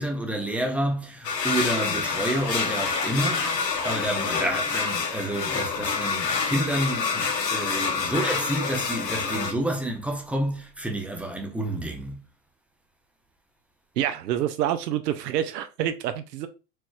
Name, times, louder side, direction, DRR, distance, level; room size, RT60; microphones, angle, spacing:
voice 1, 0.0-3.6 3.8-12.2, right 1 dB, 5° right, 0.3 m, -29 dB
sound 1, 1.2-9.5, left 5 dB, 85° left, 0.9 m, -27 dB
voice 2, 14.0-16.5, right 11 dB, 80° right, 0.6 m, -27 dB
4.4 x 3.1 x 2.3 m
hypercardioid pair, 90°, 48 cm